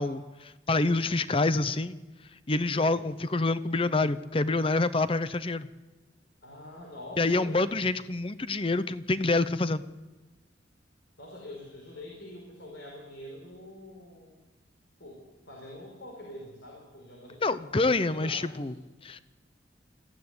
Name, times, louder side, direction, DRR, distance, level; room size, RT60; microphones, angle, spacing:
voice 1, 0.0-2.0 2.5-5.7 7.2-9.8 17.4-18.7 19.0-19.2, left 2 dB, 30° left, 14 dB, 0.7 m, -27 dB
voice 2, 2.7-3.1 6.4-7.9 11.2-14.4 15.0-17.4 17.9-18.7, left 1 dB, 70° left, 0 dB, 4.9 m, -45 dB
22.5 x 15.5 x 9.6 m, 1.2 s
head